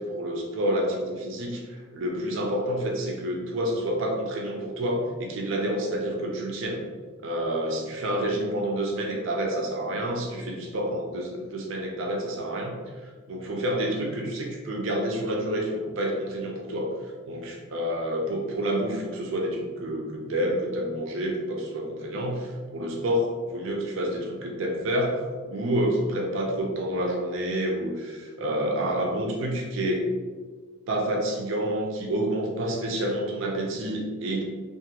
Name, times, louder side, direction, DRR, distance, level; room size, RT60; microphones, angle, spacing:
voice 1, 0.0-6.8 7.2-16.9 17.3-30.0 30.9-34.4, right 1 dB, 60° right, 0 dB, 0.4 m, -28 dB
2.5 x 2.3 x 2.8 m, 1.5 s
head